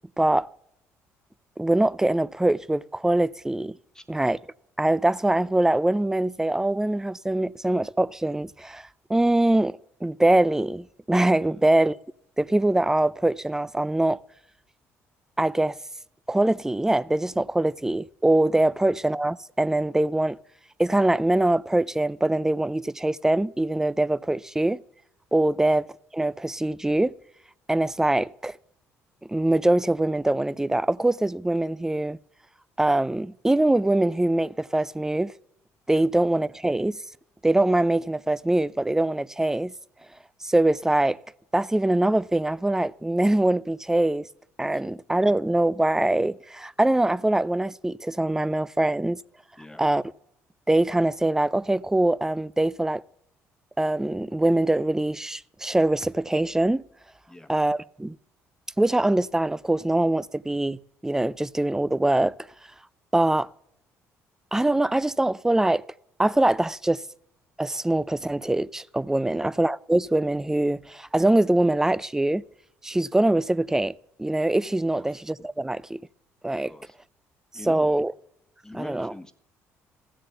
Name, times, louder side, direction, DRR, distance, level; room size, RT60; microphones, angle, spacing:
voice 1, 0.2-0.5 1.6-3.7 4.1-4.4 4.8-12.0 12.4-14.2 15.4-15.8 16.3-20.4 20.8-24.8 25.3-25.9 26.1-27.1 27.7-28.6 29.3-32.2 32.8-35.3 35.9-37.0 37.4-39.7 40.4-41.2 41.5-44.3 44.6-49.2 49.8-50.0 50.7-53.0 53.8-56.8 57.5-58.2 58.8-62.3 63.1-63.5 64.5-65.8 66.2-67.0 67.6-72.4 72.8-73.9 74.2-76.0 76.4-76.7 77.7-78.1 78.7-79.1, right 1 dB, 10° right, 0.4 m, -23 dB
voice 2, 69.2-69.5 74.9-75.2 76.6-77.0 77.5-78.0 78.6-79.3, left 1 dB, 10° left, 1.3 m, -43 dB
15.0 x 7.5 x 6.9 m
supercardioid pair, 65°, 6 cm